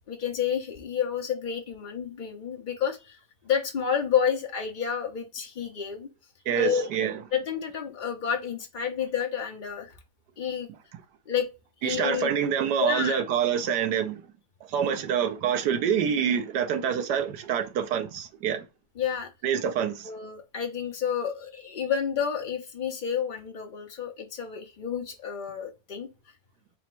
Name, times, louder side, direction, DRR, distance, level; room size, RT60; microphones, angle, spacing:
voice 1, 0.1-3.2 3.4-6.1 6.6-6.9 7.3-10.0 10.4-10.7 11.3-11.5 11.8-12.4 12.8-13.2 19.0-19.3 20.0-26.1, left 8 dB, 70° left, 0.4 m, -30 dB
voice 2, 6.5-7.1 11.8-14.2 14.7-18.6 19.4-20.1, right 8 dB, 85° right, 1.3 m, -26 dB
4.2 x 2.0 x 4.4 m
omnidirectional pair, 1.7 m